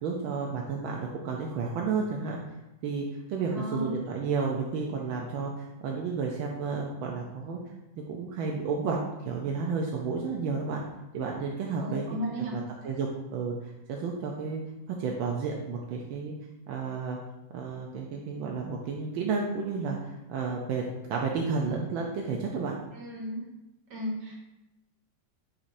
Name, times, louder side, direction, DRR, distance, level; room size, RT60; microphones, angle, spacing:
voice 1, 0.0-2.4 2.8-7.6 7.9-9.0 9.2-10.8 11.1-12.2 12.5-14.6 14.9-16.3 16.7-17.2 17.5-22.8, right 5 dB, 90° right, 0 dB, 1.5 m, -32 dB
voice 2, 3.5-3.9 11.8-12.6 22.9-23.5 23.9-24.3, equal, 70° right, -3 dB, 2.2 m, -34 dB
8.9 x 4.2 x 2.6 m, 0.96 s
omnidirectional pair, 2.1 m